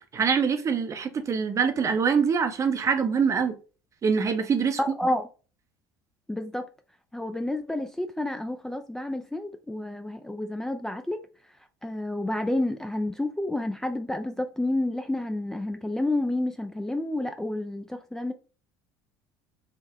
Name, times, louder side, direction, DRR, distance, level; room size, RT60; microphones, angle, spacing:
voice 1, 0.1-3.5 4.0-4.8, right 6 dB, 35° right, 0.6 m, -24 dB
voice 2, 4.8-5.2 6.3-6.7 7.1-11.2 11.8-18.3, left 1 dB, 5° left, 0.3 m, -29 dB
3.5 x 2.0 x 3.6 m
hypercardioid pair, 70°, 10 cm